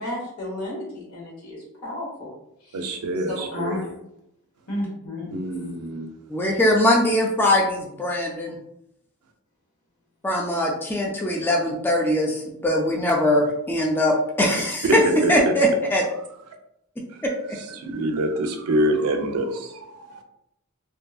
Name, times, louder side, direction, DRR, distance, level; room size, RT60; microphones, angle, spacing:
voice 1, 0.0-2.3 2.6-2.8 3.3-3.9 4.7-5.7, left 1 dB, 75° left, -2 dB, 1.0 m, -32 dB
voice 2, 2.7-3.8 5.3-6.1 14.8-15.5 17.7-20.2, right 1 dB, 80° right, 6 dB, 0.4 m, -25 dB
voice 3, 6.3-8.6 10.2-15.0 15.3-16.0 17.2-17.3, left 1 dB, 10° left, -1 dB, 0.3 m, -21 dB
2.7 x 2.4 x 2.3 m, 0.79 s
head